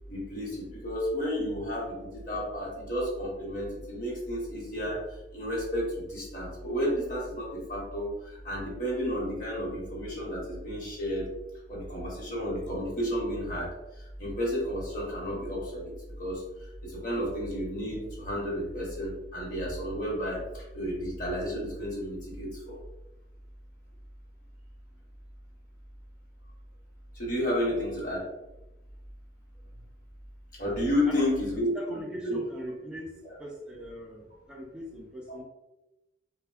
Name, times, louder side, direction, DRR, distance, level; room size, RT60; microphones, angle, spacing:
voice 1, 0.1-5.0 5.3-8.1 8.4-11.2 11.7-13.7 14.2-15.9 16.2-16.4 16.8-22.7 27.2-28.2 30.6-32.0 32.3-32.4, equal, 45° left, -4 dB, 1.0 m, -31 dB
voice 2, 31.6-33.1 33.4-35.4, equal, 5° right, -3 dB, 0.4 m, -41 dB
3.3 x 2.1 x 2.3 m, 0.97 s
head